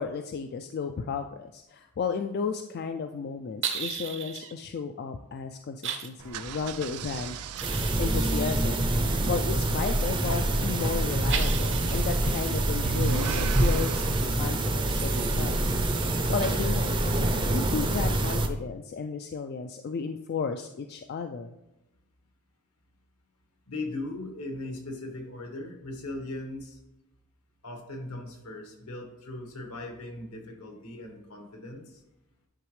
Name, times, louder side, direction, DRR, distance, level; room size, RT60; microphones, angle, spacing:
voice 1, 0.0-7.4 8.0-8.9 9.3-15.7 16.3-21.5, left 5 dB, 45° left, 6 dB, 0.3 m, -33 dB
sound 1, 3.6-4.5 5.8-6.1 7.6-9.9 11.3-13.0 14.9-16.9, right 8 dB, 55° right, 0.7 m, -38 dB
sound 2, 6.2-14.3, right 6 dB, 85° right, 0.4 m, -39 dB
sound 3, 7.6-18.5, right 1 dB, 20° right, 0.5 m, -26 dB
voice 2, 23.7-26.8 27.6-32.0, left 2 dB, 75° left, 2 dB, 1.5 m, -38 dB
10.0 x 3.9 x 3.2 m, 0.93 s
head